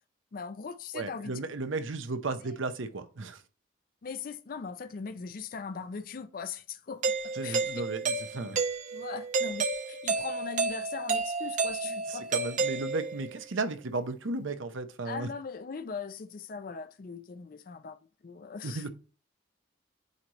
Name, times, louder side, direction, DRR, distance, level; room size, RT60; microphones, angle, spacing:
voice 1, 0.3-1.4 2.4-2.6 4.0-7.7 8.9-12.3 15.0-18.0 18.2-18.8, left 5 dB, 45° left, 0.4 m, -40 dB
voice 2, 0.9-3.4 7.3-8.6 11.8-15.3 18.6-18.9, right 3 dB, 80° right, 0.7 m, -35 dB
Doorbell, 7.0-13.4, right 4 dB, 40° right, 0.5 m, -31 dB
8.1 x 3.1 x 4.0 m
head